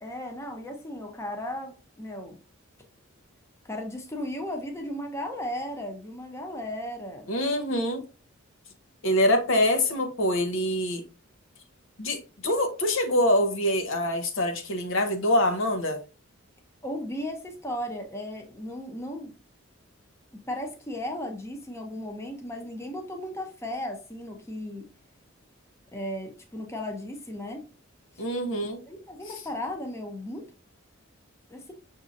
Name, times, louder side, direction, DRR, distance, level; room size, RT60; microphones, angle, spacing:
voice 1, 0.0-2.4 3.6-7.3 16.8-19.3 20.5-24.9 25.9-27.7 28.1-28.2 28.6-30.5 31.5-31.7, left 1 dB, 15° left, 0.6 m, -36 dB
voice 2, 7.3-8.0 9.0-11.0 12.0-16.0 28.2-28.8 29.3-29.4, left 1 dB, 65° left, 0.7 m, -25 dB
6.1 x 2.7 x 2.5 m
head